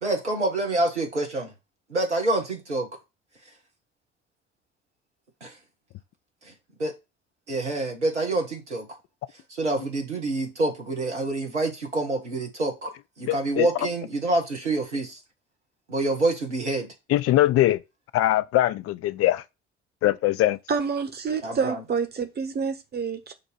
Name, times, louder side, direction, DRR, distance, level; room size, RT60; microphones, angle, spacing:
voice 1, 0.0-1.5 1.9-2.9 5.4-5.5 6.8-6.9 7.5-8.9 9.5-12.9 13.2-15.2 15.9-16.9 21.4-21.8, right 2 dB, 85° right, 1.0 m, -27 dB
voice 2, 13.3-13.7 17.1-17.8 18.1-19.4 20.0-20.6, left 14 dB, 45° left, 0.6 m, -21 dB
voice 3, 20.7-23.3, right 5 dB, 30° right, 1.2 m, -28 dB
6.8 x 2.6 x 5.3 m
figure-of-eight pair, 50°, 34 cm